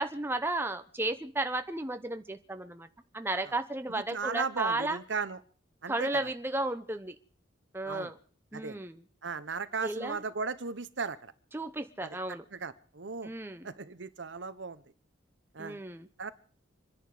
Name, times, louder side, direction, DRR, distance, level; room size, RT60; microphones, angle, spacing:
voice 1, 0.0-2.9 3.1-5.0 5.9-7.1 7.7-8.1 8.5-9.0 9.8-10.2 11.5-12.4 13.2-13.7 15.6-16.1, right 2 dB, 10° right, 8 dB, 0.8 m, -33 dB
voice 2, 4.1-5.4 5.8-6.2 7.9-8.1 8.5-8.8 9.2-11.3 12.0-12.2 12.5-13.3 13.6-14.8 15.5-15.8 16.2-16.3, right 5 dB, 70° right, 14 dB, 0.9 m, -36 dB
26.0 x 10.5 x 4.9 m, 0.43 s
head